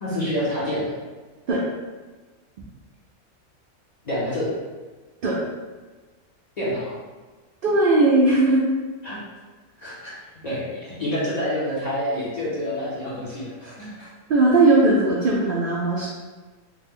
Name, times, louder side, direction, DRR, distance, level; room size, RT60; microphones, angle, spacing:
voice 1, 0.0-0.9 4.0-4.5 6.6-6.9 9.0-9.2 9.8-10.1 10.4-14.1, left 1 dB, 40° left, -8 dB, 0.6 m, -27 dB
voice 2, 7.6-8.6 14.3-16.1, right 2 dB, 80° right, -4 dB, 0.4 m, -18 dB
3.2 x 2.1 x 3.5 m, 1.3 s
omnidirectional pair, 1.5 m